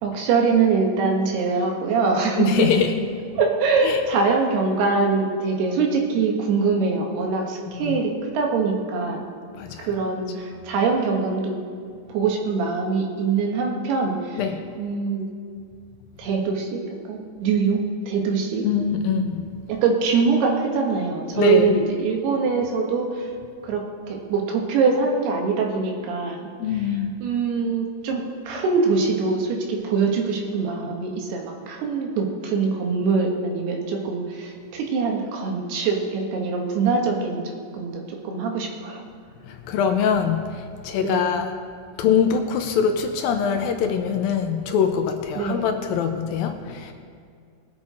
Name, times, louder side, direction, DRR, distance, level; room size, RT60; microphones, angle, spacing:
voice 1, 0.0-2.8 3.4-9.3 9.8-11.5 12.1-15.3 16.2-16.8 17.1-18.7 19.7-23.3 23.6-23.8 24.1-39.0 41.0-41.4 45.3-45.7, right 4 dB, 80° right, 0 dB, 3.4 m, -23 dB
voice 2, 2.4-2.9 3.8-4.0 7.8-8.0 9.6-9.9 14.4-14.6 18.6-19.4 21.3-21.7 26.6-27.1 39.4-41.5 42.0-46.9, left 7 dB, 75° left, 5 dB, 2.3 m, -23 dB
20.5 x 8.1 x 4.2 m, 2.2 s
omnidirectional pair, 4.6 m